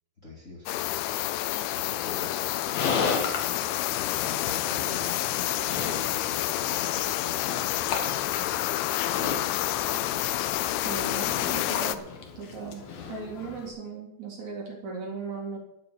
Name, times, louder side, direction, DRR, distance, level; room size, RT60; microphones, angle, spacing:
voice 1, 0.2-1.0 1.7-3.2 3.9-8.9, left 2 dB, 20° left, -5 dB, 2.7 m, -45 dB
sound 1, 0.7-12.0, left 15 dB, 80° left, 2.5 m, -29 dB
Livestock farm animals working animals, 2.4-13.7, left 5 dB, 55° left, 2.2 m, -35 dB
voice 2, 10.8-12.0 12.4-12.8 13.1-15.6, right 4 dB, 50° right, -2 dB, 3.3 m, -37 dB
12.5 x 6.1 x 9.4 m, 0.80 s
omnidirectional pair, 4.9 m